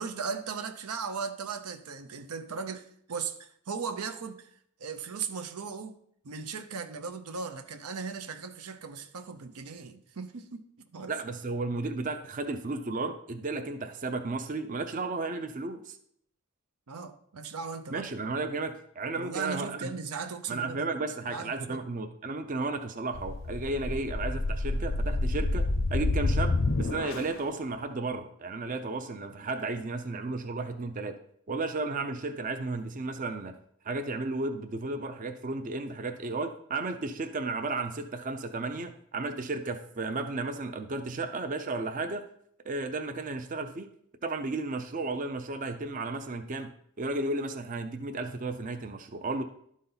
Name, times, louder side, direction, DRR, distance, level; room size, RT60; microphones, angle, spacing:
voice 1, 0.0-4.5 4.8-6.0 6.2-10.6 10.9-11.1 16.9-18.1 19.2-20.9 21.3-21.8, right 5 dB, 90° right, 0.7 m, -37 dB
voice 2, 11.1-16.0 17.9-19.9 20.5-25.6 25.9-31.2 31.5-33.5 33.8-42.2 42.6-43.9 44.2-46.7 47.0-49.4, right 3 dB, 35° right, 0.4 m, -33 dB
sound 1, 23.1-27.5, left 2 dB, 60° left, 0.5 m, -29 dB
11.5 x 4.1 x 3.9 m
head